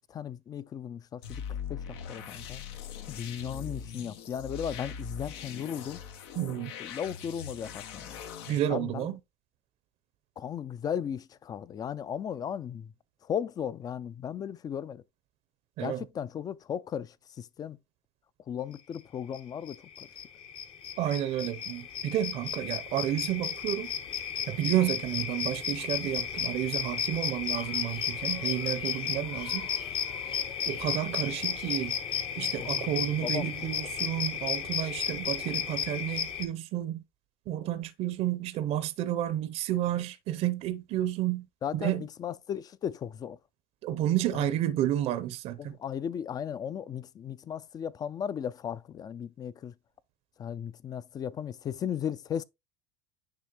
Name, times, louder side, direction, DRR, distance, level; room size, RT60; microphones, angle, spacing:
voice 1, 0.1-1.4 1.7-2.6 3.1-6.0 6.8-8.2 8.7-9.1 10.4-12.9 13.2-15.0 15.8-17.8 18.5-20.1 32.6-32.7 33.2-33.5 41.6-43.4 44.3-44.5 45.6-49.7 50.4-52.4, left 8 dB, 30° left, 0.4 m, -36 dB
sound 1, 1.2-8.6, left 7 dB, 75° left, 0.9 m, -41 dB
voice 2, 6.4-6.7 8.5-9.2 15.8-16.0 21.0-23.9 24.5-29.7 30.7-31.9 32.4-37.0 37.5-41.5 41.7-42.0 43.8-45.8, right 12 dB, 50° right, 0.6 m, -31 dB
sound 2, 19.3-19.4 19.7-36.5, left 8 dB, 45° left, 1.0 m, -33 dB
sound 3, 27.5-35.4, left 5 dB, 90° left, 1.5 m, -52 dB
9.7 x 3.3 x 2.9 m
hypercardioid pair, 90°, 13 cm